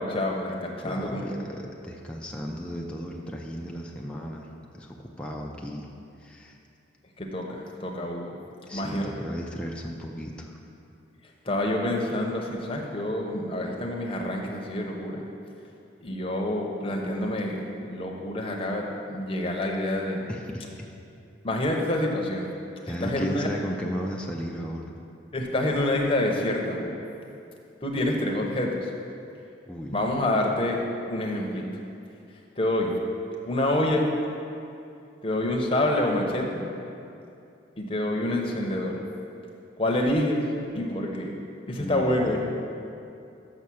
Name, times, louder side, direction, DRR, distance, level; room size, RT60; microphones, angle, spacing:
voice 1, 0.0-1.5 7.2-8.3 8.7-9.1 11.4-15.3 16.0-20.2 21.4-22.5 22.9-23.5 25.3-27.1 27.8-28.9 29.9-31.6 32.6-33.0 33.4-34.1 35.2-36.7 37.8-39.0 39.8-40.4 40.7-41.3 41.7-42.4, left 1 dB, 30° left, 0 dB, 0.8 m, -27 dB
voice 2, 0.8-4.5 4.7-5.9 6.2-6.6 8.7-10.6 20.3-20.7 22.8-24.9 29.7-30.0 41.7-42.4, equal, 5° left, -1 dB, 0.4 m, -35 dB
6.4 x 5.7 x 6.2 m, 2.6 s
head